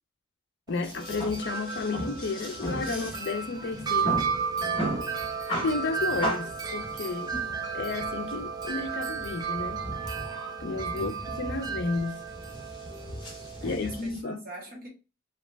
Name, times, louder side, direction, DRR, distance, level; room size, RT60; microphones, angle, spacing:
voice 1, 0.7-4.2 5.6-7.3 7.7-9.8 10.6-12.2 13.6-14.4, left 3 dB, 55° left, 0.4 m, -32 dB
Wind chime, 0.7-14.0, right 6 dB, 20° right, 0.3 m, -34 dB
sound 1, 0.8-14.2, equal, 25° left, 1.1 m, -37 dB
voice 2, 7.3-7.7 10.9-11.3 11.5-11.7 13.6-14.9, right 1 dB, 45° right, 1.2 m, -43 dB
2.9 x 2.4 x 3.3 m
head